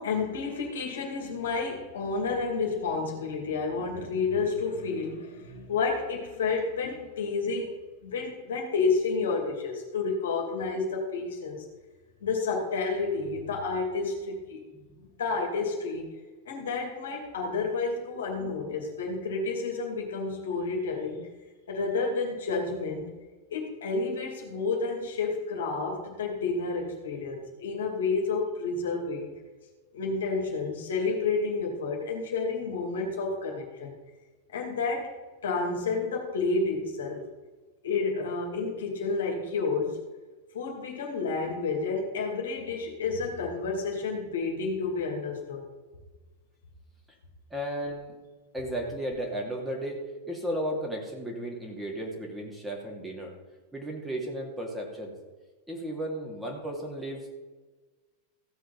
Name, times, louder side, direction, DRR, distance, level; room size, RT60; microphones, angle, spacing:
voice 1, 0.0-7.7 8.0-11.6 12.2-14.6 15.0-16.1 16.5-21.3 21.7-23.1 23.5-29.3 29.9-33.9 34.5-35.1 35.4-37.2 37.8-40.0 40.5-45.6, left 4 dB, 60° left, 1 dB, 2.5 m, -30 dB
voice 2, 14.7-15.1 18.4-18.8 47.5-48.2 48.5-53.3 53.7-55.1 55.7-57.3, right 1 dB, 5° right, -1 dB, 2.7 m, -35 dB
15.0 x 7.7 x 4.1 m, 1.3 s
figure-of-eight pair, 90°, 0 cm